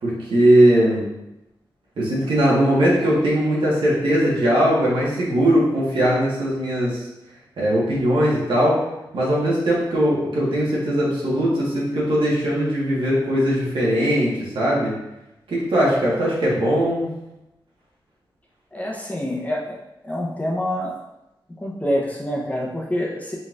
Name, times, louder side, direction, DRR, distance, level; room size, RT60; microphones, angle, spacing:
voice 1, 0.0-1.0 2.0-7.0 7.6-8.8 9.1-14.9 15.5-17.1, right 1 dB, 85° right, -6 dB, 1.4 m, -19 dB
voice 2, 18.7-19.8 20.0-20.9 21.6-23.3, equal, 15° left, -3 dB, 0.9 m, -26 dB
4.2 x 3.9 x 2.5 m, 0.91 s
wide cardioid pair, 110°, 8 cm